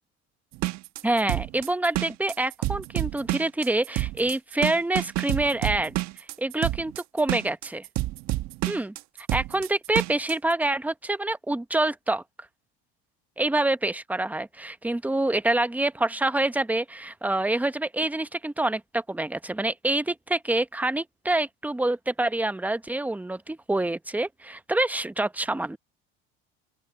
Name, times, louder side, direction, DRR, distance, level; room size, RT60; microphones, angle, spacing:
sound 1, 0.5-10.3, right 18 dB, 65° right, 1.3 m, -29 dB
voice 1, 1.0-6.0 6.4-7.9 8.7-8.9 9.3-12.2 13.4-25.8, right 2 dB, 5° right, 1.0 m, -26 dB
open air
supercardioid pair, 90°, 30 cm